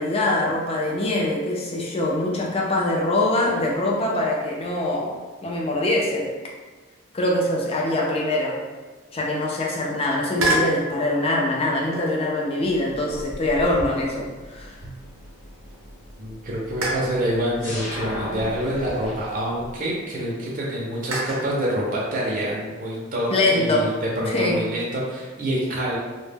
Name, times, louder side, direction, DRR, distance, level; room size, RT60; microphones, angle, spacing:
voice 1, 0.0-6.3 7.1-8.6 9.1-14.8 23.3-23.9 24.3-24.6, left 1 dB, 25° left, -2 dB, 0.4 m, -23 dB
sound 1, 10.4-10.8 11.9-12.3 13.0-15.3 15.7-15.8 16.8-17.2 18.4-19.8 21.1-21.5, right 1 dB, 80° right, 0.6 m, -29 dB
sound 2, 12.7-19.3, equal, 90° left, 0.9 m, -38 dB
voice 2, 16.2-26.0, right 1 dB, 40° right, -4 dB, 0.4 m, -26 dB
2.1 x 2.1 x 3.3 m, 1.3 s
head